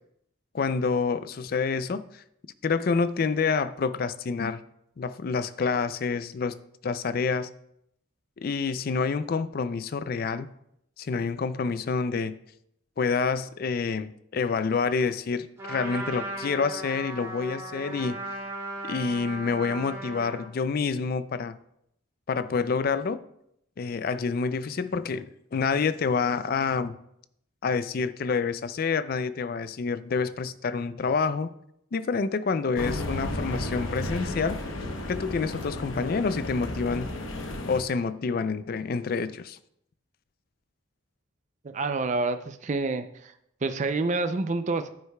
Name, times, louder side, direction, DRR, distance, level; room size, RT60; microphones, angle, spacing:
voice 1, 0.5-2.2 2.6-4.6 5.0-6.5 6.8-7.5 8.4-10.5 11.0-12.4 13.0-18.2 18.9-21.6 22.3-23.2 23.8-26.9 27.6-31.5 31.9-34.6 35.1-37.1 37.7-39.6, left 5 dB, 50° left, 14 dB, 0.4 m, -28 dB
Trumpet, 15.6-20.5, right 2 dB, 15° right, 2.4 m, -37 dB
sound 1, 32.7-37.8, left 1 dB, 85° left, 0.9 m, -33 dB
voice 2, 41.6-43.3 43.6-44.9, right 3 dB, 35° right, 9 dB, 0.4 m, -28 dB
9.5 x 9.4 x 2.2 m, 0.76 s
head